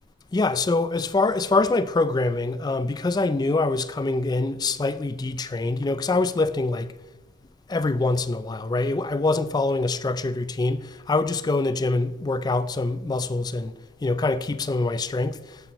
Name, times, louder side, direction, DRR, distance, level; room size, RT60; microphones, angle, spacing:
voice 1, 0.3-6.9 7.7-13.7 14.0-15.4, left 3 dB, 20° left, 0.3 m, -24 dB
16.0 x 6.0 x 3.0 m
head